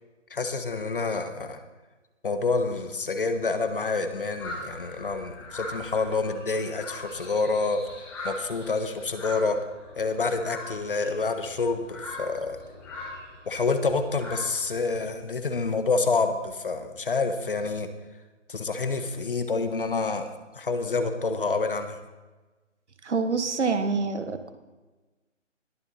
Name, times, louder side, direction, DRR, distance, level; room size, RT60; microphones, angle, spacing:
voice 1, 0.3-1.6 2.2-7.8 8.2-9.6 10.0-12.6 13.5-17.9 18.5-22.0, left 3 dB, 45° left, 8 dB, 1.2 m, -28 dB
sound 1, 4.4-15.0, left 1 dB, 5° left, 1.4 m, -41 dB
voice 2, 23.0-24.5, right 4 dB, 65° right, 9 dB, 1.3 m, -26 dB
21.0 x 7.1 x 4.1 m, 1.2 s
figure-of-eight pair, 170°, 38 cm